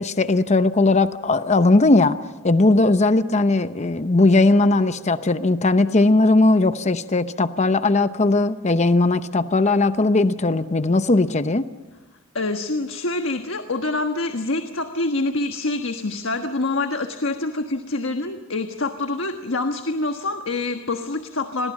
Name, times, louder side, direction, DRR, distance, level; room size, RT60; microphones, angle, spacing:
voice 1, 0.0-2.2 2.4-11.6, left 2 dB, 35° left, 11 dB, 0.8 m, -18 dB
voice 2, 12.3-21.7, left 2 dB, 70° left, 6 dB, 1.4 m, -26 dB
30.0 x 22.0 x 7.3 m, 1.1 s
head